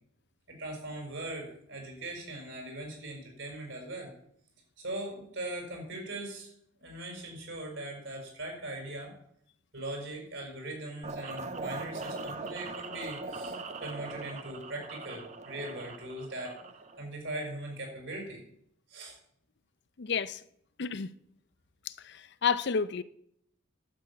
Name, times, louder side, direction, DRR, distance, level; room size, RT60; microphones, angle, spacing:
voice 1, 0.5-4.1 4.8-6.5 6.8-9.1 9.7-13.5 13.8-16.6 17.0-18.4 18.9-19.2, right 1 dB, 70° right, 5.7 m, -40 dB
sound 1, 11.0-17.0, right 3 dB, 35° right, 0.9 m, -40 dB
voice 2, 20.0-20.4 20.8-21.1 21.9-23.0, left 6 dB, 60° left, 0.6 m, -31 dB
11.5 x 6.8 x 8.6 m
head